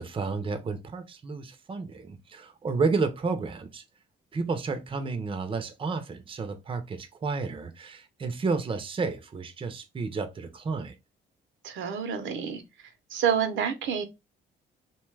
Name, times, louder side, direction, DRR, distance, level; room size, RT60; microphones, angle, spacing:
voice 1, 0.0-3.8 4.3-11.0, right 4 dB, 25° right, 0.5 m, -31 dB
voice 2, 11.6-12.6 13.1-14.0, right 8 dB, 75° right, 0.6 m, -28 dB
2.8 x 2.2 x 3.2 m
cardioid pair, 90°, 20 cm